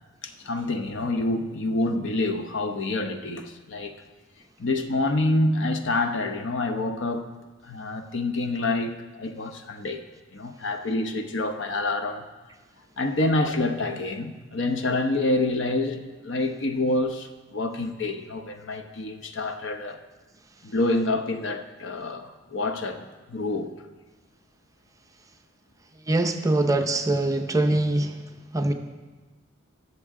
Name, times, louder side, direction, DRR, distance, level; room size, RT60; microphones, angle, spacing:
voice 1, 0.2-3.9 4.6-7.2 7.6-10.0 10.3-12.2 13.0-20.0 20.6-23.7, left 2 dB, 65° left, 0.8 m, -27 dB
voice 2, 26.1-28.1 28.5-28.7, right 2 dB, 15° right, 0.6 m, -23 dB
19.5 x 7.0 x 3.7 m
head